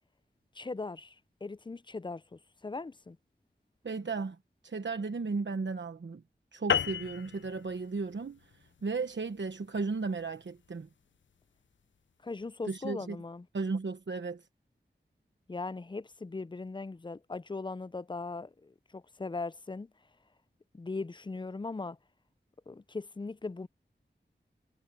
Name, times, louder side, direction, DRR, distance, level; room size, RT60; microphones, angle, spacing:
voice 1, 0.5-1.2 1.4-3.2 12.2-13.5 15.5-19.9 20.7-22.0 22.7-23.7, left 3 dB, 25° left, 0.4 m, -39 dB
voice 2, 3.8-4.4 4.6-6.2 6.5-10.9 12.7-13.2 13.5-14.5, right 4 dB, 75° right, 1.0 m, -35 dB
sound 1, 6.7-11.4, left 8 dB, 80° left, 0.4 m, -35 dB
wide cardioid pair, 45°, 19 cm